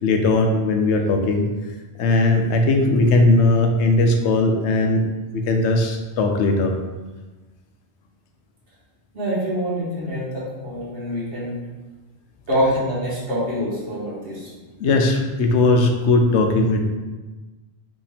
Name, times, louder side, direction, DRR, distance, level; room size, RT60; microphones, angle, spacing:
voice 1, 0.0-1.5 2.0-5.0 5.3-6.7 14.8-16.8, left 2 dB, 85° left, 4 dB, 0.9 m, -18 dB
voice 2, 9.1-11.6 12.5-14.5, equal, 75° right, -7 dB, 1.6 m, -25 dB
5.1 x 2.8 x 3.4 m, 1.2 s
omnidirectional pair, 1.1 m